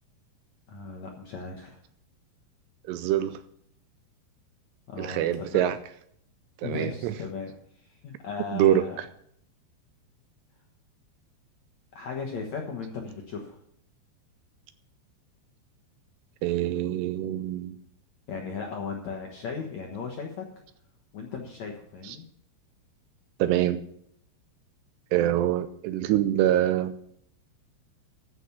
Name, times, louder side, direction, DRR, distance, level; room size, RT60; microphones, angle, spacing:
voice 1, 0.7-1.8 4.9-5.6 6.6-7.5 7.9-9.0 11.9-13.6 18.3-20.4 21.1-22.2, left 5 dB, 70° left, 1 dB, 1.7 m, -36 dB
voice 2, 2.9-3.4 5.0-5.9 6.6-7.2 8.5-8.8 16.4-17.8 22.0-22.2 23.4-23.8 25.1-26.9, right 12 dB, 85° right, 12 dB, 2.6 m, -25 dB
14.0 x 6.2 x 7.0 m, 0.69 s
omnidirectional pair, 5.0 m